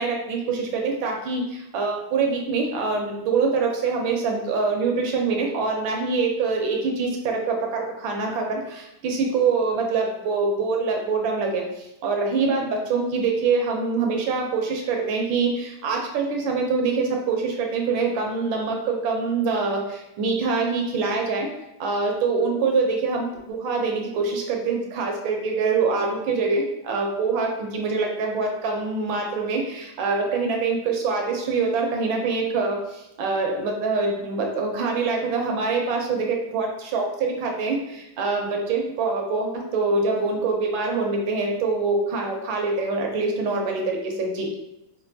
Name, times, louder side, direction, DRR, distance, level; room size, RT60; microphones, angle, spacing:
voice 1, 0.0-21.5 21.8-32.8 33.2-44.5, right 4 dB, 75° right, 1 dB, 1.4 m, -25 dB
5.1 x 2.5 x 2.7 m, 0.91 s
omnidirectional pair, 2.3 m